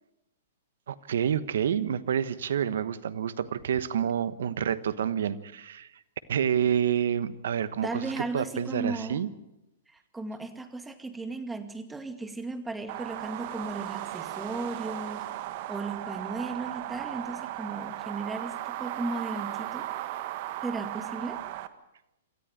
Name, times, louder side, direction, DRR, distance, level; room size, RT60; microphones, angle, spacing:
voice 1, 0.9-5.9 6.3-9.3, right 9 dB, 70° right, 16 dB, 1.2 m, -28 dB
voice 2, 7.8-9.2 9.9-15.3 15.7-19.9 20.6-21.4, right 3 dB, 10° right, 8 dB, 2.3 m, -36 dB
sound 1, 12.9-21.7, right 14 dB, 50° right, 1.4 m, -36 dB
27.0 x 13.5 x 8.9 m, 0.91 s
hypercardioid pair, 120°, 0 cm